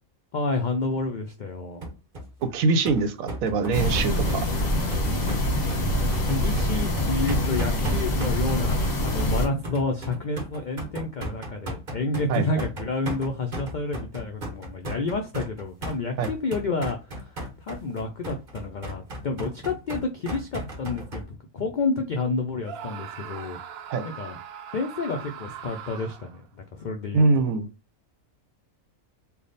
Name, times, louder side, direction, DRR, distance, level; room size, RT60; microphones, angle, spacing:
voice 1, 0.3-1.8 6.2-23.6 24.1-24.4 24.7-27.2, left 3 dB, 80° left, 4 dB, 0.4 m, -30 dB
sound 1, 1.8-21.2, right 1 dB, 35° right, 1.3 m, -36 dB
voice 2, 2.4-4.5 12.3-12.4 16.2-16.3 23.9-24.0 27.1-27.7, right 3 dB, 80° right, 10 dB, 1.0 m, -23 dB
sound 2, 3.7-9.5, left 1 dB, 35° left, 1.0 m, -25 dB
Screaming, 22.6-26.4, right 8 dB, 65° right, 0.6 m, -40 dB
3.4 x 2.3 x 4.0 m, 0.30 s
omnidirectional pair, 1.4 m